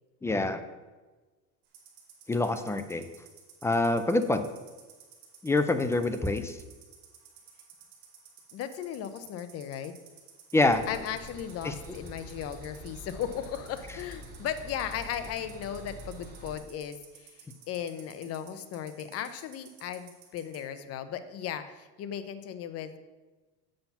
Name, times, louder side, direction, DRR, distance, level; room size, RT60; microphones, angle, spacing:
voice 1, 0.2-0.6 2.3-3.0 3.6-4.5 5.4-6.6 10.5-10.8 11.6-11.7, left 2 dB, 10° left, 9 dB, 0.3 m, -26 dB
sound 1, 1.6-20.6, right 9 dB, 70° right, 2.4 m, -53 dB
voice 2, 8.5-9.9 10.9-23.0, left 9 dB, 45° left, 10 dB, 0.7 m, -36 dB
sound 2, 10.6-16.6, right 1 dB, 25° right, 2.9 m, -46 dB
7.7 x 5.7 x 5.8 m, 1.2 s
cardioid pair, 140°, 33 cm